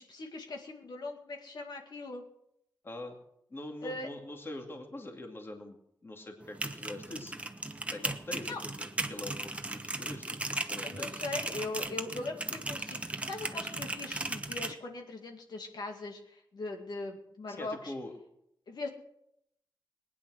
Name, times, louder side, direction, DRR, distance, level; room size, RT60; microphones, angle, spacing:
voice 1, 0.0-2.2 3.8-4.1 8.5-8.6 10.8-17.9 18.7-18.9, left 2 dB, 65° left, 2 dB, 2.2 m, -40 dB
voice 2, 2.8-3.2 3.5-5.8 6.0-7.3 7.9-11.2 17.5-18.1, left 1 dB, 30° left, 3 dB, 2.4 m, -43 dB
sound 1, 6.4-14.7, right 2 dB, 15° right, 1.1 m, -37 dB
20.5 x 10.0 x 6.3 m, 0.77 s
wide cardioid pair, 130°, 8 cm